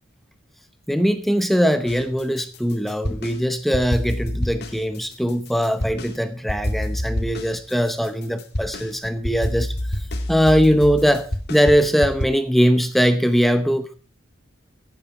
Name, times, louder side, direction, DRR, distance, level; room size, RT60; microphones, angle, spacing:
voice 1, 0.9-10.0 10.3-13.9, equal, ahead, 10 dB, 0.8 m, -20 dB
sound 1, 1.9-3.4 3.7-6.1 6.5-12.3, left 1 dB, 50° left, 2.2 m, -28 dB
15.5 x 9.1 x 4.4 m, 0.40 s
head